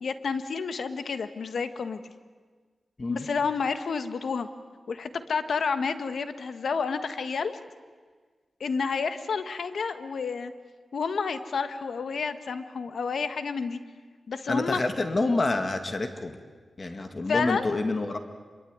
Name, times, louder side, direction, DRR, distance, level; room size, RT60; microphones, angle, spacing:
voice 1, 0.0-2.0 3.1-4.5 4.9-7.6 8.6-10.5 10.9-13.8 14.3-14.8 17.3-17.7, left 5 dB, 80° left, 10 dB, 1.4 m, -30 dB
voice 2, 14.5-16.4 16.8-18.2, left 2 dB, 40° left, 7 dB, 2.1 m, -27 dB
26.0 x 23.0 x 9.4 m, 1.5 s
wide cardioid pair, 80°, 0 cm